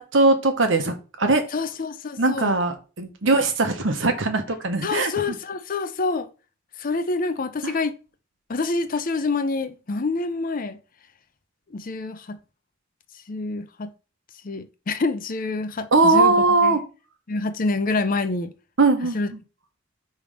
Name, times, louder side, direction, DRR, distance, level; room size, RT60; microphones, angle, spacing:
voice 1, 0.0-1.4 2.2-5.1 7.6-7.7 15.9-16.8 18.8-19.2, right 3 dB, 70° right, 1.2 m, -20 dB
voice 2, 1.5-2.5 4.8-6.3 6.8-7.9 8.5-10.8 11.7-12.4 13.3-13.9 14.4-16.3 16.6-16.8 17.3-18.5 19.1-19.3, left 3 dB, 45° left, 0.6 m, -27 dB
5.4 x 3.5 x 4.9 m
head